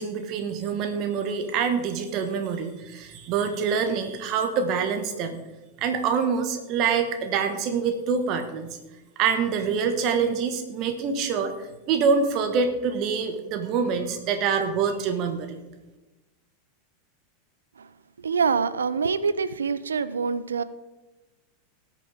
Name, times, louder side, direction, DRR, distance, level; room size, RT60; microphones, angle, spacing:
voice 1, 0.0-5.4 5.8-8.8 9.2-11.5 11.9-15.6, right 6 dB, 45° right, 7 dB, 1.6 m, -25 dB
voice 2, 18.2-20.6, right 5 dB, 80° right, 15 dB, 0.5 m, -25 dB
18.5 x 6.8 x 3.6 m, 1.1 s
figure-of-eight pair, 90°, 0 cm